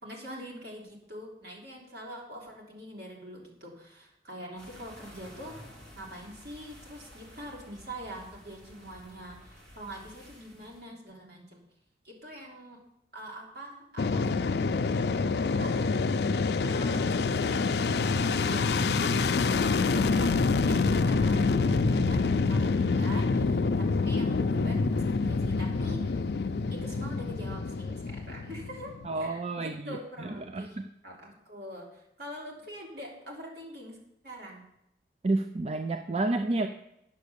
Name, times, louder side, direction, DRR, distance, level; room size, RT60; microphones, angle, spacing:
voice 1, 0.0-5.5 5.9-11.6 12.0-12.8 13.1-15.7 16.6-26.1 26.7-28.9 29.2-30.8 31.0-34.0 34.2-34.7, equal, 65° right, -2 dB, 3.2 m, -44 dB
sound 1, 4.6-10.9, equal, 80° right, 3.1 m, -52 dB
Fixed-wing aircraft airplane, 14.0-29.1, left 4 dB, 70° left, 0.4 m, -27 dB
voice 2, 29.1-30.0 30.5-30.8 35.2-36.7, right 2 dB, 35° right, 7 dB, 0.4 m, -29 dB
9.4 x 7.2 x 6.8 m, 0.81 s
head